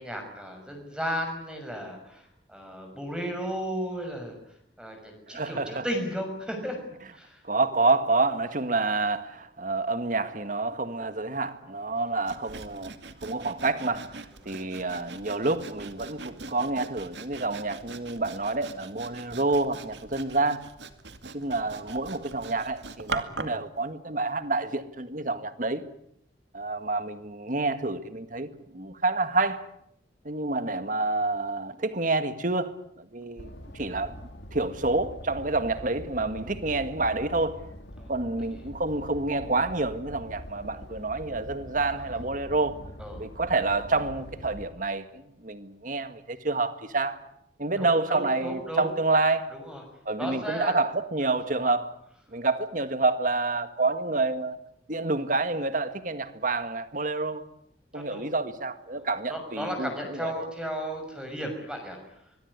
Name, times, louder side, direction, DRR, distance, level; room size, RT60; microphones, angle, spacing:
voice 1, 0.0-4.4 4.8-6.8 7.1-7.4 14.4-14.5 38.0-38.1 43.0-43.2 47.8-48.9 49.5-49.8 50.2-50.7 57.9-58.2 58.9-62.0, equal, 5° right, 6.2 m, -34 dB
voice 2, 5.3-5.8 7.4-12.9 13.2-14.2 14.5-20.7 21.3-25.8 26.5-29.7 30.3-32.7 33.0-34.2 34.5-37.7 38.1-42.8 43.2-47.2 47.6-49.5 50.1-51.9 52.3-54.6 54.9-57.5 57.9-60.5, right 3 dB, 45° right, 1.8 m, -28 dB
Sawing, 12.3-23.6, right 3 dB, 75° right, 2.3 m, -41 dB
sound 1, 33.4-44.7, equal, 70° left, 3.3 m, -44 dB
24.5 x 22.0 x 9.8 m
head